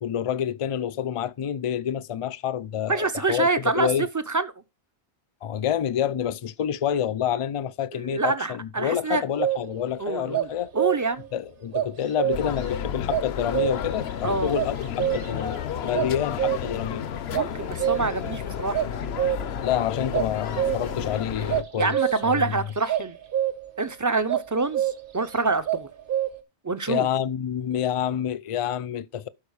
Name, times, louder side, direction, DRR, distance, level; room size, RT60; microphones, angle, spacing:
voice 1, 0.0-4.1 5.4-10.7 11.3-17.0 19.6-22.0 22.2-22.6 26.9-29.3, left 9 dB, 50° left, 0.4 m, -28 dB
voice 2, 2.9-4.5 7.9-9.2 10.0-11.3 14.2-14.5 17.3-18.8 21.4-21.5 21.8-23.2 23.8-25.9 26.6-27.1, right 3 dB, 25° right, 0.5 m, -26 dB
sound 1, 9.4-9.9 10.3-11.3 11.7-12.7 13.1-14.0 14.5-15.6 15.9-16.9 17.3-18.4 18.7-19.7 20.1-21.1 21.5-22.3 22.9-23.8 24.3-25.3 25.7-26.4, right 11 dB, 55° right, 1.2 m, -27 dB
sound 2, 12.3-21.6, left 8 dB, 70° left, 0.9 m, -32 dB
12.0 x 4.4 x 4.7 m
omnidirectional pair, 1.1 m